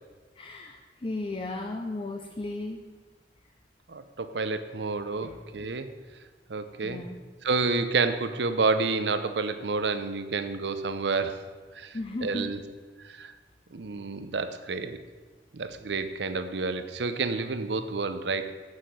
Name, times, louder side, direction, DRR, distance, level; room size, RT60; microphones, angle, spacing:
voice 1, 0.3-2.9 5.2-5.4 6.8-7.2 11.9-12.5, left 2 dB, 30° left, 3 dB, 0.5 m, -35 dB
voice 2, 3.9-5.9 6.5-7.0 7.4-11.5 11.7-12.6 13.0-13.3 13.7-15.0 15.5-18.5, right 4 dB, 70° right, 10 dB, 0.7 m, -29 dB
7.4 x 6.4 x 7.7 m, 1.4 s
head